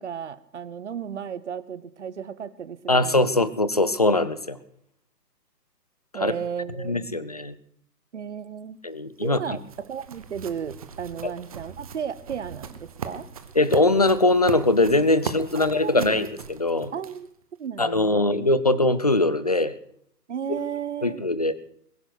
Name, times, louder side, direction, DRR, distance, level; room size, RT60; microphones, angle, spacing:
voice 1, 0.0-3.3 6.1-7.2 8.1-8.8 9.2-13.3 15.5-16.2 16.9-17.3 17.6-18.3 20.3-21.2, right 7 dB, 45° right, 18 dB, 1.0 m, -34 dB
voice 2, 2.9-4.6 6.1-6.3 6.8-7.5 8.8-9.6 11.2-11.3 13.6-16.9 17.8-19.8 21.0-21.5, left 2 dB, 25° left, 15 dB, 0.5 m, -22 dB
sound 1, 8.9-17.4, right 6 dB, 25° right, 0.9 m, -39 dB
21.0 x 9.9 x 6.0 m, 0.66 s
figure-of-eight pair, 145°, 48 cm